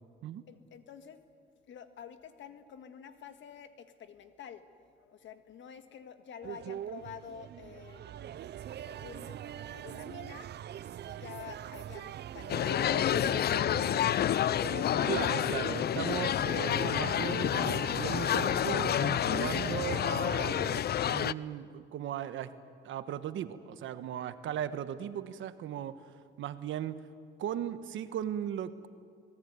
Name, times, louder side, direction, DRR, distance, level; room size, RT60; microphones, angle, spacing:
voice 1, 0.5-1.2 1.7-4.6 4.9-10.5 11.0-13.6, left 8 dB, 70° left, 8 dB, 1.8 m, -49 dB
sound 1, 6.4-20.8, right 10 dB, 60° right, 0.6 m, -43 dB
sound 2, 12.5-21.3, left 10 dB, 55° left, 0.5 m, -29 dB
voice 2, 15.1-22.5 22.8-26.0 26.4-27.0 27.4-28.9, right 10 dB, 75° right, 11 dB, 1.3 m, -37 dB
25.5 x 19.5 x 9.6 m, 2.3 s
cardioid pair, 90°, 20 cm